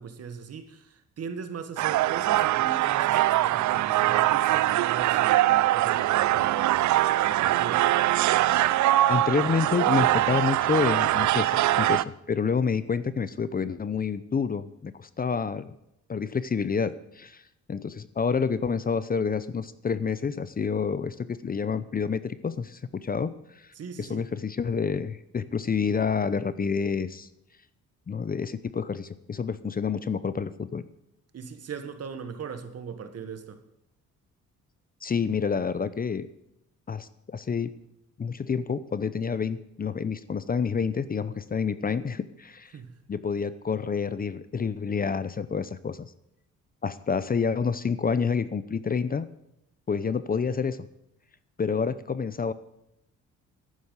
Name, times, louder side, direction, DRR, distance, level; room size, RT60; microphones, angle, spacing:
voice 1, 0.0-6.9 7.2-7.8 23.7-24.2 31.3-33.6 42.7-43.0, right 6 dB, 55° right, 1.7 m, -39 dB
sound 1, 1.8-12.0, right 15 dB, 70° right, 0.5 m, -23 dB
voice 2, 9.1-15.7 16.1-17.4 17.7-23.7 24.0-27.3 28.1-30.8 35.0-36.3 36.9-37.7 38.2-42.7 43.1-46.1 46.8-49.3 49.9-50.9 51.6-52.5, left 6 dB, 30° left, 0.7 m, -28 dB
11.5 x 9.3 x 8.2 m
cardioid pair, 90°, 30 cm